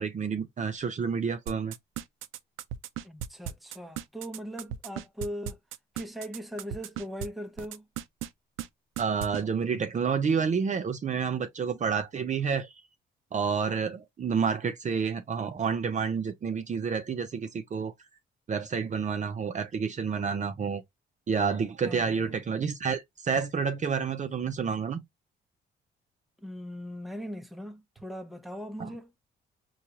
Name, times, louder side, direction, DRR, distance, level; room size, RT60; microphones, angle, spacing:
voice 1, 0.0-1.7 9.0-12.7 13.3-17.9 18.5-20.8 21.3-25.0 28.8-28.9, right 6 dB, 40° right, 0.6 m, -29 dB
sound 1, 1.5-7.3 7.6-8.3 8.6-8.7 9.0-9.4, right 11 dB, 85° right, 0.4 m, -36 dB
voice 2, 3.0-5.6 5.9-7.9 21.8-22.3 26.4-29.1, equal, ahead, 0.7 m, -39 dB
4.5 x 2.4 x 2.7 m
cardioid pair, 90°, 20 cm